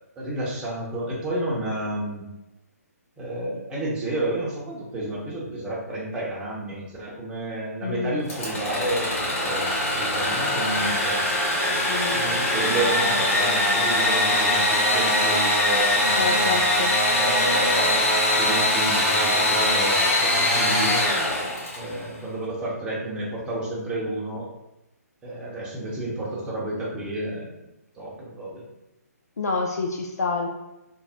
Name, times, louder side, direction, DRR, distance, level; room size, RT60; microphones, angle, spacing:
voice 1, 0.2-2.2 3.2-11.2 12.1-16.6 17.1-18.1 18.4-21.0 21.8-24.5 25.2-27.5 27.9-28.6, right 1 dB, 10° right, -6 dB, 0.7 m, -31 dB
voice 2, 7.8-8.2 11.9-12.2 16.1-16.9 29.4-30.5, left 4 dB, 75° left, 1 dB, 0.4 m, -27 dB
Engine / Sawing, 8.3-22.0, left 1 dB, 55° left, 1.0 m, -22 dB
2.6 x 2.0 x 3.5 m, 0.94 s
figure-of-eight pair, 140°, 9 cm